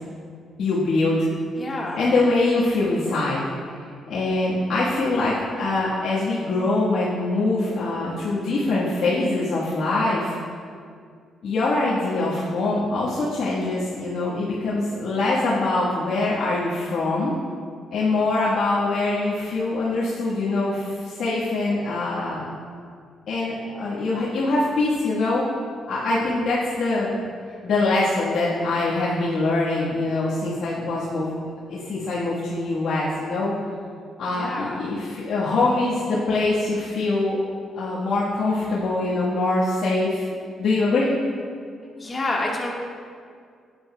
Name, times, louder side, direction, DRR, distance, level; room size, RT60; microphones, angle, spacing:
voice 1, 0.6-1.2 1.9-3.4 3.7-10.3 11.4-17.3 17.9-22.5 23.3-25.4 25.9-27.2 27.6-31.3 31.7-33.5 34.2-37.4 37.7-41.1, left 2 dB, 65° left, -9 dB, 1.3 m, -23 dB
voice 2, 1.6-2.0 34.3-34.8 42.0-42.7, left 2 dB, 30° left, -2 dB, 1.5 m, -28 dB
10.5 x 7.9 x 2.2 m, 2.2 s
cardioid pair, 90°, 0 cm